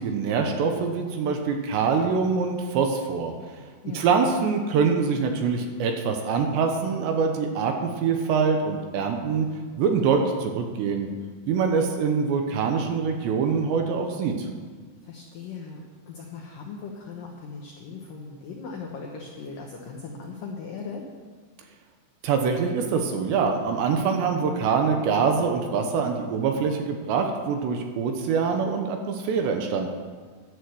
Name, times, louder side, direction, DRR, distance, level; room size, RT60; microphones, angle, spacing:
voice 1, 0.0-3.3 3.9-9.5 9.8-11.1 11.5-14.5 22.2-29.9, right 5 dB, 80° right, 4 dB, 2.8 m, -24 dB
voice 2, 3.8-4.2 15.0-21.0, left 5 dB, 90° left, 0 dB, 1.9 m, -38 dB
11.5 x 7.1 x 7.7 m, 1.5 s
omnidirectional pair, 5.6 m